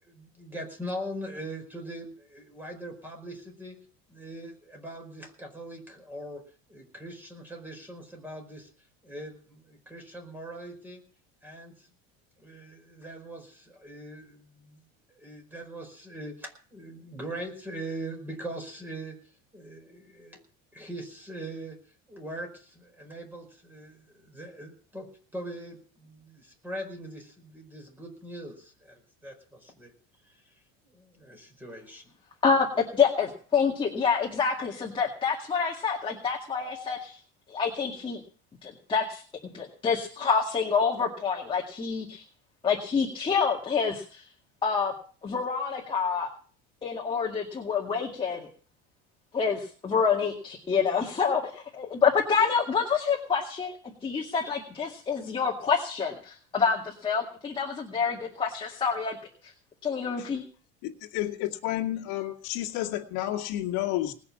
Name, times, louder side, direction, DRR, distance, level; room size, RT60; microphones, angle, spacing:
voice 1, 0.0-3.8 4.1-6.4 6.7-8.7 9.0-11.0 11.4-11.9 12.4-14.8 15.1-20.4 20.7-21.8 22.1-29.9 30.2-30.5 30.8-32.1, right 1 dB, 5° right, 3 dB, 4.9 m, -41 dB
voice 2, 32.4-37.2 37.5-38.2 38.6-42.2 42.6-44.2 44.6-44.9 45.2-46.3 46.8-48.5 49.3-53.7 54.0-59.2 59.4-59.5 59.8-60.4, left 6 dB, 15° left, -1 dB, 2.1 m, -27 dB
voice 3, 60.8-64.1, left 14 dB, 70° left, 2 dB, 2.1 m, -31 dB
19.5 x 6.6 x 8.6 m, 0.43 s
cardioid pair, 155°, 30 cm